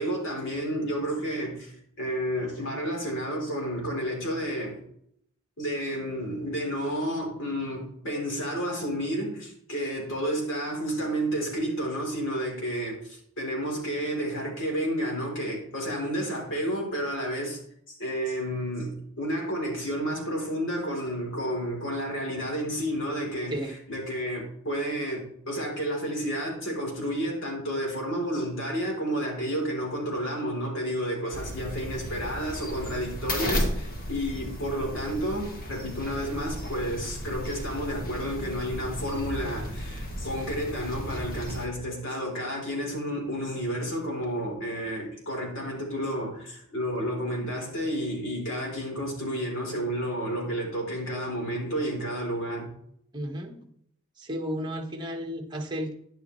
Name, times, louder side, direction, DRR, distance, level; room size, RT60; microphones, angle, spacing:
voice 1, 0.0-4.8 5.6-17.6 17.9-52.7, equal, 60° left, 4.0 m, -31 dB
sound 1, 31.3-41.7, equal, 40° left, 1.9 m, -34 dB
voice 2, 53.1-53.6 54.2-55.9, equal, 20° right, 1.5 m, -33 dB
11.0 x 10.5 x 3.3 m
head